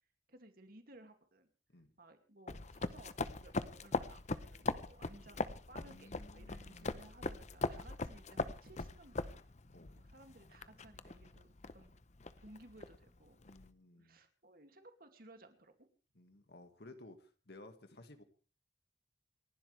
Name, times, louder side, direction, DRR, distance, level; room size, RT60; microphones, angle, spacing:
voice 1, 0.3-1.5 2.0-9.4 10.0-11.9 12.4-13.4 14.0-15.9, right 2 dB, 55° right, 6 dB, 2.5 m, -59 dB
sound 1, 2.5-13.7, left 3 dB, 40° left, 0.8 m, -41 dB
voice 2, 5.8-7.1 9.7-10.0 13.4-14.2 16.2-18.2, left 2 dB, 65° left, 7 dB, 2.0 m, -57 dB
29.0 x 12.0 x 3.4 m, 0.36 s
head